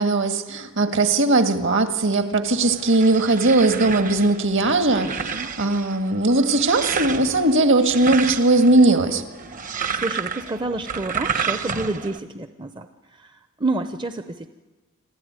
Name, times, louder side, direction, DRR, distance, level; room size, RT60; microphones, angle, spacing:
voice 1, 0.0-9.2, right 2 dB, 55° right, 8 dB, 1.8 m, -19 dB
sound 1, 2.5-12.2, right 6 dB, 35° right, 1.0 m, -31 dB
voice 2, 5.0-5.5 9.9-12.9 13.2-13.3 13.6-14.5, right 2 dB, 20° right, 9 dB, 0.7 m, -29 dB
26.5 x 15.0 x 9.5 m, 1.3 s
head